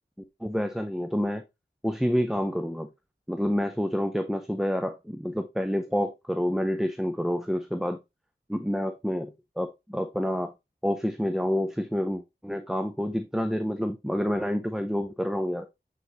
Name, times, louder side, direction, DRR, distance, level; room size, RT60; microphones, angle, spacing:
voice 1, 0.4-1.4 1.8-2.9 3.3-8.0 8.5-10.5 10.8-15.7, equal, ahead, 0.6 m, -28 dB
7.7 x 4.1 x 3.0 m
wide cardioid pair, 40°, 20 cm